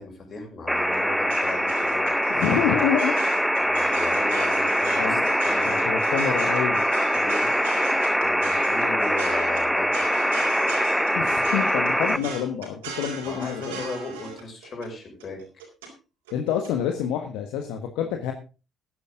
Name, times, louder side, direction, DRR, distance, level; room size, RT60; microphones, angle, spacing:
voice 1, 0.0-2.2 3.6-5.9 7.1-7.5 8.2-10.1 12.1-12.3 13.2-15.4 17.9-18.2, left 3 dB, 45° left, 2 dB, 6.0 m, -36 dB
sound 1, 0.7-12.2, equal, ahead, 0.8 m, -23 dB
sound 2, 0.7-15.9 16.3-16.7, right 5 dB, 80° right, 4.1 m, -38 dB
voice 2, 2.3-3.2 5.0-5.3 5.6-6.9 11.1-13.8 16.3-18.3, left 9 dB, 70° left, 5 dB, 1.4 m, -27 dB
14.5 x 11.0 x 3.7 m, 0.32 s
hypercardioid pair, 50°, 0 cm